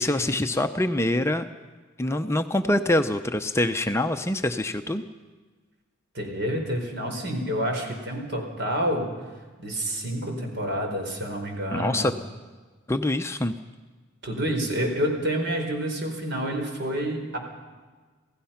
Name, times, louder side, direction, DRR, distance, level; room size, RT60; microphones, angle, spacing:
voice 1, 0.0-1.5 2.0-5.0 11.7-12.1 12.9-13.5, left 1 dB, 15° left, 7 dB, 0.6 m, -25 dB
voice 2, 6.1-9.1 9.6-12.1 14.2-17.4, equal, 55° right, 3 dB, 4.5 m, -28 dB
27.5 x 17.0 x 5.8 m, 1.4 s
head